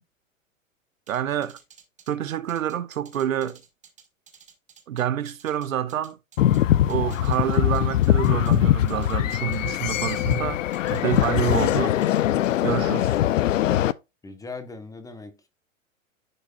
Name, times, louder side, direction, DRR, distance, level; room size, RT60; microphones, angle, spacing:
sound 1, 1.1-6.6 6.9-8.6 8.9-10.4 10.7-11.7 12.0-12.5, right 6 dB, 20° right, 2.0 m, -52 dB
voice 1, 1.1-1.6 2.1-3.6 4.9-6.2 6.9-10.6 10.9-12.0 12.6-13.2, right 10 dB, 80° right, 0.8 m, -27 dB
sound 2, 6.4-13.9, left 13 dB, 70° left, 0.6 m, -22 dB
voice 2, 14.2-15.5, left 4 dB, 10° left, 1.1 m, -40 dB
11.0 x 4.7 x 2.4 m
hypercardioid pair, 110°, 40 cm